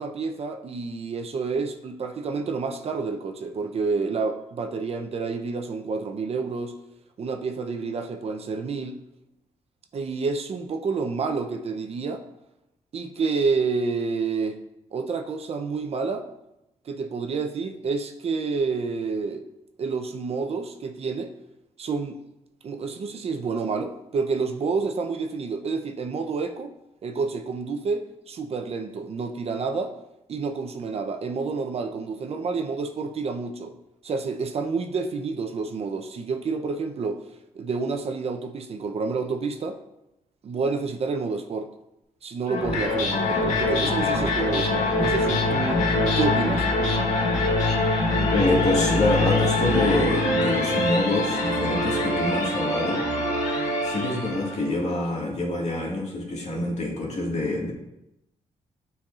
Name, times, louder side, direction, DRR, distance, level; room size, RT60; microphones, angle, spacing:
voice 1, 0.0-6.8 7.2-9.0 9.9-12.2 12.9-14.6 14.9-16.3 16.9-19.5 19.8-21.3 21.8-22.2 22.6-26.7 27.0-29.9 30.3-33.7 34.0-37.2 37.5-39.8 40.4-41.7 42.2-45.8 46.2-46.7, right 4 dB, 55° right, 6 dB, 0.6 m, -29 dB
sound 1, 42.5-54.7, left 2 dB, 80° left, 1.3 m, -24 dB
voice 2, 48.3-53.1 53.8-57.7, left 2 dB, 65° left, -2 dB, 1.8 m, -26 dB
8.6 x 4.6 x 2.4 m, 0.89 s
cardioid pair, 85°, 13 cm